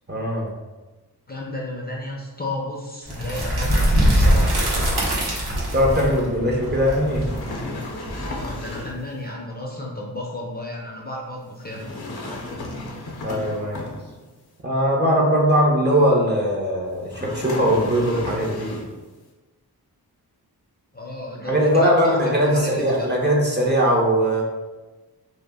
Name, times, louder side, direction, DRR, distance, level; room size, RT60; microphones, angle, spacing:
voice 1, 0.1-0.5 5.7-7.2 13.2-13.8 14.6-18.7 21.4-24.4, equal, 30° right, -3 dB, 0.5 m, -20 dB
voice 2, 1.3-4.7 8.1-12.0 20.9-22.1 22.4-23.1, left 1 dB, 25° left, -2 dB, 0.4 m, -33 dB
sound 1, 3.1-8.9, equal, 80° right, 0.7 m, -22 dB
Chair Slides, 6.8-9.1 11.6-14.3 17.1-19.0, left 2 dB, 75° left, 0.6 m, -34 dB
2.1 x 2.0 x 3.4 m, 1.2 s
wide cardioid pair, 70°, 38 cm